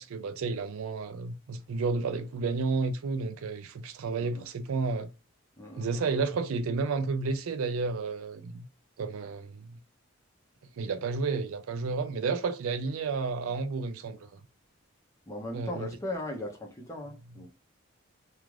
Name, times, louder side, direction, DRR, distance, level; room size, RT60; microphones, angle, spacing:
voice 1, 0.0-5.1 5.8-8.6 9.0-9.8 10.8-14.4 15.5-15.9, right 4 dB, 80° right, 0.4 m, -31 dB
voice 2, 5.6-6.2 15.3-17.5, left 1 dB, 15° left, 0.6 m, -38 dB
2.4 x 2.3 x 3.1 m
head